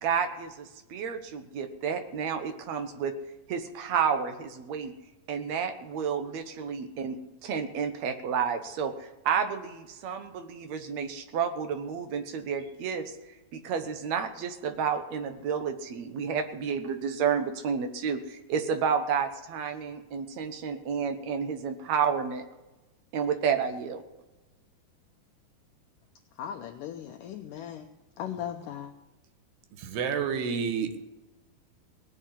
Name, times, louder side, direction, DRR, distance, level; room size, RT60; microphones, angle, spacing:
voice 1, 0.0-3.2 3.5-4.9 5.3-13.1 13.5-22.5 23.1-24.0, right 7 dB, 65° right, 7 dB, 1.8 m, -30 dB
voice 2, 26.3-27.9 28.2-28.9, left 9 dB, 75° left, 4 dB, 2.1 m, -38 dB
voice 3, 29.7-31.0, right 6 dB, 80° right, 8 dB, 3.3 m, -30 dB
19.0 x 7.5 x 9.6 m, 1.1 s
omnidirectional pair, 4.6 m